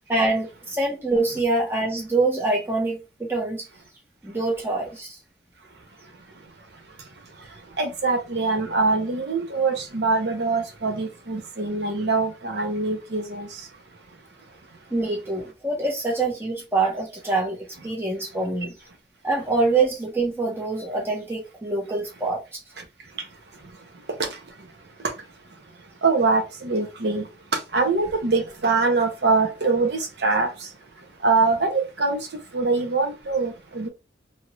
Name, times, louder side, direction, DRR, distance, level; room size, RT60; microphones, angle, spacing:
voice 1, 0.1-3.7 4.2-5.2 14.9-18.7 19.2-22.6, right 3 dB, 15° right, 1.0 m, -25 dB
voice 2, 7.8-13.6 24.2-24.4 26.0-27.3 27.5-30.7 31.2-32.2 32.5-33.9, right 3 dB, 70° right, 0.8 m, -23 dB
2.9 x 2.5 x 3.0 m
head